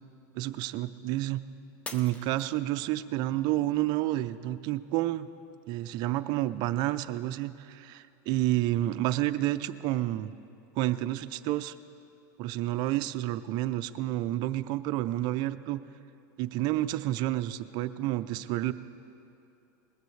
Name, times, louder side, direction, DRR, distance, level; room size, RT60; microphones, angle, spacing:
voice 1, 0.4-1.4 1.9-5.3 5.7-10.3 10.8-11.8 12.4-15.8 16.4-18.7, right 15 dB, 50° right, 13 dB, 0.5 m, -30 dB
Shatter, 1.8-3.1 3.7-4.1 4.7-4.8, left 3 dB, 15° left, 0.6 m, -44 dB
20.5 x 15.0 x 3.2 m, 2.7 s
supercardioid pair, 135°, 9 cm